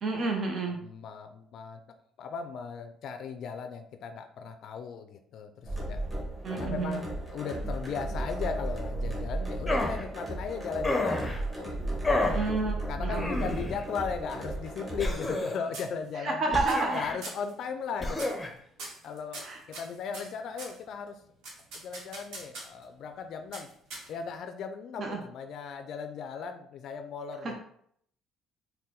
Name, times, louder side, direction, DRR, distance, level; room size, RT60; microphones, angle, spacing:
voice 1, 0.0-0.8 6.4-7.1 12.3-12.8 13.0-13.5 16.2-17.0 19.4-19.6 25.0-25.2 27.4-27.6, right 3 dB, 45° right, 2 dB, 0.5 m, -30 dB
voice 2, 0.7-6.0 6.5-7.1 7.3-11.8 12.2-12.4 12.9-16.6 16.9-18.3 19.0-21.2 21.7-23.7 24.1-27.6, left 6 dB, 60° left, 7 dB, 0.3 m, -37 dB
sound 1, 5.6-15.1, right 1 dB, 15° right, 1.4 m, -35 dB
sound 2, 9.7-10.0 10.8-11.4 12.0-12.5 13.2-13.8 15.0-15.7 16.5-17.2 18.0-18.5, left 2 dB, 15° left, 0.6 m, -30 dB
sound 3, 14.5-15.4 15.7-16.3 16.7-17.0 17.2-17.5 18.1-18.5 18.8-20.8 21.4-22.8 23.5-24.4, right 2 dB, 80° right, 1.0 m, -43 dB
4.1 x 2.1 x 3.7 m, 0.67 s
cardioid pair, 105°, 0 cm